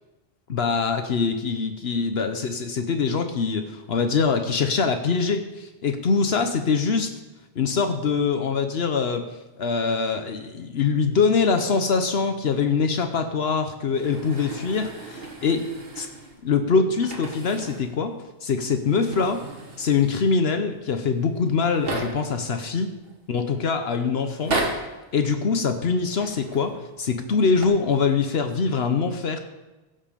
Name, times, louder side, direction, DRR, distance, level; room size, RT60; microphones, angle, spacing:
voice 1, 0.5-7.1 7.6-9.2 9.6-15.6 16.0-16.1 16.4-18.1 18.4-19.4 19.8-22.9 23.3-24.6 25.1-29.4, left 5 dB, 75° left, 7 dB, 1.1 m, -23 dB
sound 1, 13.9-16.4 16.9-18.0 18.2-18.3 18.8-20.3 21.1-21.2 21.4-22.4 23.0-23.5 24.3-25.0 26.1-26.7 27.4-27.7, right 2 dB, 65° right, 1.8 m, -34 dB
16.5 x 5.6 x 6.8 m, 1.1 s
omnidirectional pair, 1.1 m